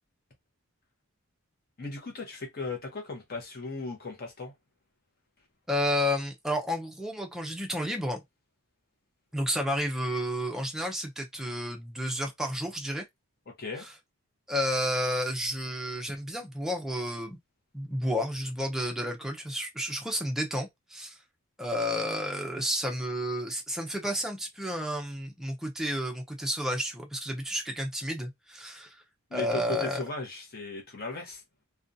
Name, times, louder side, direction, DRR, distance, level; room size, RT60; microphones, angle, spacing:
voice 1, 1.8-4.5 13.5-13.9 29.3-31.4, left 3 dB, 40° left, 0.7 m, -37 dB
voice 2, 5.7-8.2 9.3-13.0 13.8-13.9 14.5-17.4 17.7-21.2 21.6-29.0 29.3-30.0, equal, ahead, 0.4 m, -31 dB
2.5 x 2.2 x 2.6 m
head